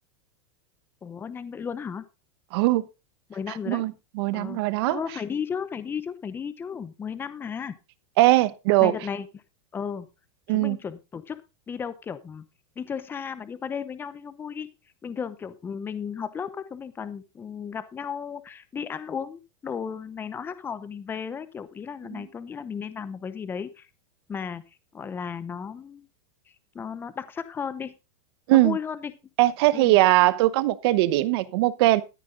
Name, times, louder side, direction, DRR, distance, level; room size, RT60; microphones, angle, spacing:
voice 1, 1.0-2.0 3.3-3.8 4.3-4.6 4.9-7.8 8.8-9.4 9.7-10.1 10.5-11.4 11.7-12.4 12.8-14.7 15.0-23.9 24.3-24.6 24.9-26.1 26.7-28.0 28.5-29.1 29.7-30.0, left 7 dB, 15° left, 0.8 m, -34 dB
voice 2, 2.5-2.8 3.7-5.0 8.2-8.9 10.5-10.8 22.1-22.2 28.5-28.8 29.4-32.0, right 17 dB, 50° right, 1.0 m, -20 dB
13.5 x 9.3 x 3.8 m
supercardioid pair, 160°, 16 cm